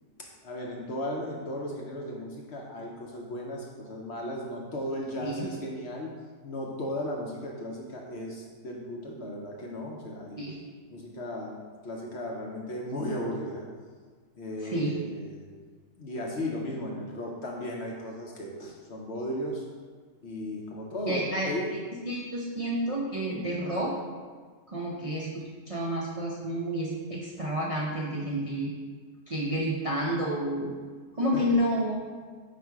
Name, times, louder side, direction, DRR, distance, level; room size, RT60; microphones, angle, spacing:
voice 1, 0.4-6.1 6.4-10.4 10.9-13.7 14.3-15.5 16.0-19.6 20.2-21.7 31.3-31.4, left 1 dB, 55° left, -1 dB, 0.8 m, -36 dB
voice 2, 14.6-14.9 21.1-21.5 22.1-23.9 24.7-28.7 29.3-30.7 31.2-32.0, equal, 45° right, -5 dB, 0.4 m, -30 dB
5.0 x 4.2 x 4.6 m, 1.5 s
omnidirectional pair, 1.6 m